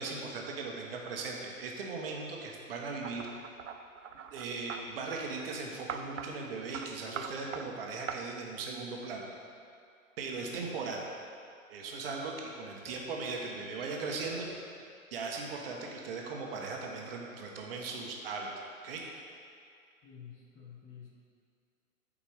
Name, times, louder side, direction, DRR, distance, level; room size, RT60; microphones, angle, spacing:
voice 1, 0.0-3.3 4.3-9.3 10.2-11.0 11.7-14.5 15.1-19.0, right 4 dB, 45° right, -1 dB, 1.2 m, -38 dB
sound 1, 3.0-4.8 5.9-6.3 6.7-6.9 7.2-7.7 8.1-8.2, right 8 dB, 60° right, 0.6 m, -40 dB
voice 2, 10.4-10.7 20.0-21.1, left 7 dB, 20° left, -3 dB, 0.9 m, -50 dB
Burping eructation, 12.5-12.6 12.8-13.0 13.8-13.9 14.1-14.7 16.0-16.1 16.5-16.9, right 3 dB, 20° right, 1.8 m, -52 dB
12.5 x 5.0 x 3.5 m, 2.3 s
figure-of-eight pair, 115°, 42 cm